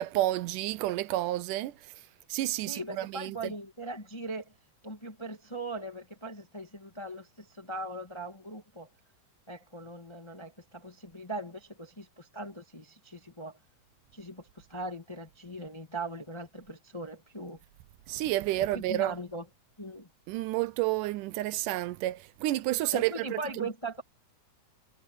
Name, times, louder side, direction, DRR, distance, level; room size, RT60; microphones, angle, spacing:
voice 1, 0.0-1.7 2.3-3.5 18.1-19.2 20.3-23.7, right 16 dB, 85° right, 2.2 m, -30 dB
voice 2, 2.7-4.5 4.8-8.9 9.5-13.6 14.1-17.6 18.7-19.4 19.8-20.1 22.9-24.0, right 2 dB, 15° left, 1.1 m, -40 dB
omnidirectional pair, 3.7 m